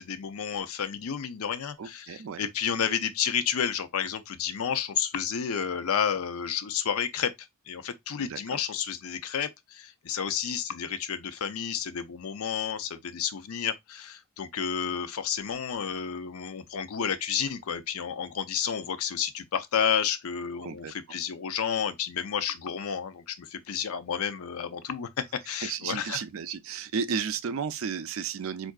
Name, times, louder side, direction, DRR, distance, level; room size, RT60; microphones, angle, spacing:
voice 1, 0.0-7.3 7.7-20.8 21.1-26.2, left 7 dB, 80° left, 0.5 m, -31 dB
voice 2, 1.8-2.4 8.2-8.6 20.6-20.9 25.6-28.7, right 6 dB, 65° right, 0.4 m, -33 dB
4.5 x 2.5 x 2.3 m
head